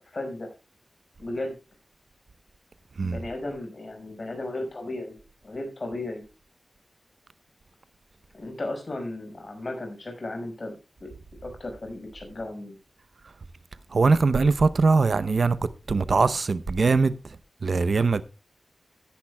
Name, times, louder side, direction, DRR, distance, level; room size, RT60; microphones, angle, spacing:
voice 1, 0.1-0.5 1.2-1.6 3.0-5.2 5.4-6.2 8.3-10.8 11.0-11.1 11.4-12.8, left 2 dB, 50° left, 5.5 m, -35 dB
voice 2, 13.9-15.6 15.9-17.1 17.6-18.2, right 4 dB, 65° right, 0.7 m, -21 dB
16.0 x 10.5 x 2.3 m
wide cardioid pair, 80°, 0 cm